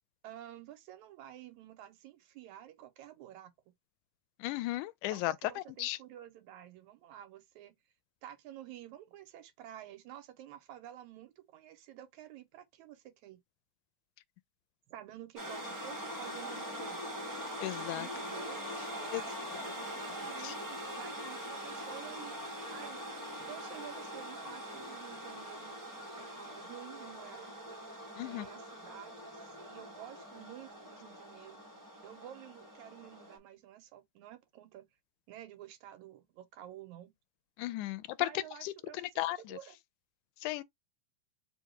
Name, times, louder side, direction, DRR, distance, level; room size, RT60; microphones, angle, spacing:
voice 1, 0.2-3.7 5.1-7.7 8.2-13.4 14.9-17.0 18.0-18.6 19.0-23.0 23.5-25.8 26.2-27.5 28.2-31.6 32.0-34.9 35.3-37.1 38.2-39.8, right 12 dB, 80° right, 2.2 m, -51 dB
voice 2, 4.4-6.0 17.6-18.1 19.1-19.2 19.5-19.6 20.4-20.5 28.2-28.5 37.6-38.3 38.6-39.6 40.4-40.6, left 17 dB, 90° left, 2.0 m, -35 dB
sound 1, 15.4-33.4, equal, 20° right, 0.4 m, -43 dB
4.8 x 2.3 x 4.5 m
omnidirectional pair, 3.4 m